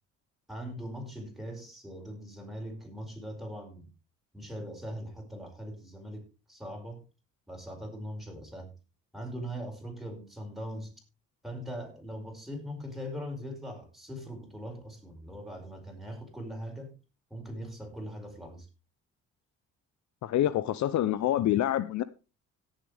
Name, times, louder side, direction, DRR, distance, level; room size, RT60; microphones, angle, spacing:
voice 1, 0.5-3.9 4.3-7.0 7.5-8.7 9.1-10.9 11.4-16.9 17.3-18.7, equal, ahead, 5.1 m, -41 dB
voice 2, 20.2-22.0, left 12 dB, 70° left, 0.7 m, -26 dB
17.5 x 7.4 x 3.4 m
cardioid pair, 90°, 30 cm